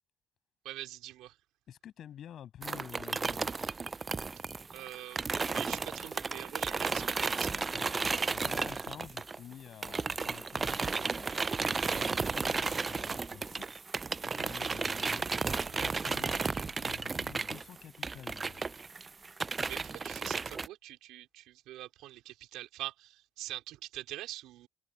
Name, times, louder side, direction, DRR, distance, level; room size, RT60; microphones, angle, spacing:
voice 1, 0.6-1.3 4.7-7.5 19.7-24.7, right 15 dB, 75° right, 4.6 m, -44 dB
voice 2, 1.7-3.8 7.5-11.4 11.9-13.8 14.3-15.3 15.7-18.7, left 10 dB, 60° left, 7.7 m, -50 dB
sound 1, 2.6-9.5 9.8-20.7, right 4 dB, 30° right, 0.5 m, -34 dB
hypercardioid pair, 60°, 0 cm